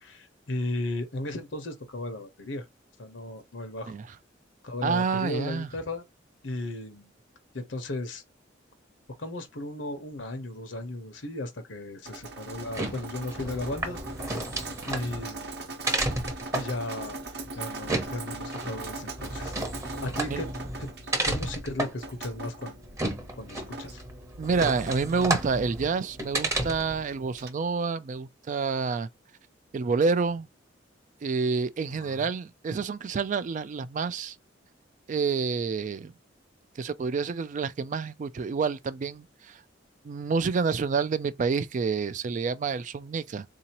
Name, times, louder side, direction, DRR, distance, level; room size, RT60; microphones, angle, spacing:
voice 1, 0.0-2.6 3.0-3.9 4.6-6.0 6.4-7.1 7.5-8.2 9.2-14.0 14.8-15.7 16.5-17.2 17.5-19.5 20.0-20.5 20.8-20.9 21.2-22.7 23.4-24.0 31.9-32.4, left 1 dB, 75° left, 1.0 m, -35 dB
voice 2, 4.8-5.7 20.3-20.4 24.4-29.1 29.7-30.5 31.2-34.3 35.1-36.1 36.8-39.6 40.0-43.4, right 5 dB, 40° right, 0.3 m, -28 dB
Drip, 12.1-27.5, right 2 dB, 60° right, 0.8 m, -41 dB
sound 1, 12.5-27.0, right 2 dB, 15° right, 0.8 m, -33 dB
3.8 x 2.8 x 2.9 m
head